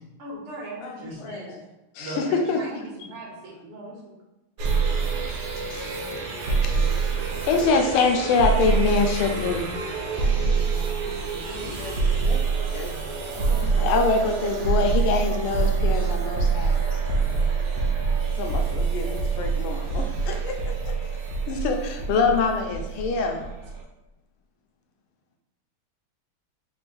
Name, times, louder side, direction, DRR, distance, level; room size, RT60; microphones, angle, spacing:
voice 1, 0.2-1.5 2.0-4.2 6.7-7.2 9.7-9.9 10.7-11.8 19.7-20.1, right 1 dB, 80° right, -3 dB, 2.1 m, -39 dB
voice 2, 0.8-1.6 11.6-14.4 18.3-21.0, left 3 dB, 75° left, 2 dB, 1.3 m, -37 dB
voice 3, 1.9-2.8 5.7-5.8 6.6-6.7 7.5-9.7 13.8-17.0 21.5-23.5, left 4 dB, 90° left, 3 dB, 1.5 m, -23 dB
sound 1, 4.6-23.8, right 5 dB, 65° right, 1.1 m, -25 dB
4.6 x 2.5 x 3.8 m, 1.0 s
omnidirectional pair, 2.4 m